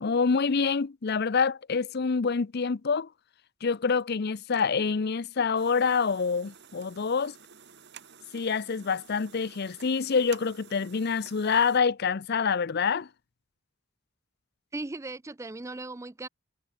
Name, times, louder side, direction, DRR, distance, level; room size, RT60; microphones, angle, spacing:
voice 1, 0.0-3.1 3.6-7.3 8.3-13.1, left 5 dB, 50° left, 0.5 m, -26 dB
sound 1, 5.5-11.8, right 8 dB, 55° right, 1.8 m, -52 dB
voice 2, 14.7-16.3, right 2 dB, 15° right, 0.4 m, -37 dB
head